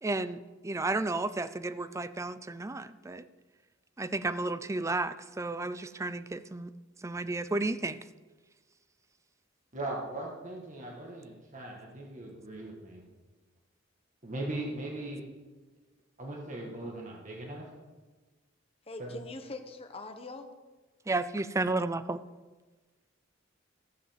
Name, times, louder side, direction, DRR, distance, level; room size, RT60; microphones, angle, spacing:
voice 1, 0.0-3.3 4.0-6.7 7.0-8.0 21.1-22.2, right 2 dB, 15° right, 13 dB, 0.4 m, -32 dB
voice 2, 9.7-13.0 14.2-15.3 16.2-17.7 19.0-19.2, right 1 dB, 40° right, -1 dB, 1.9 m, -39 dB
voice 3, 18.9-20.5, left 2 dB, 30° left, 5 dB, 1.1 m, -42 dB
15.0 x 5.6 x 7.4 m, 1.3 s
head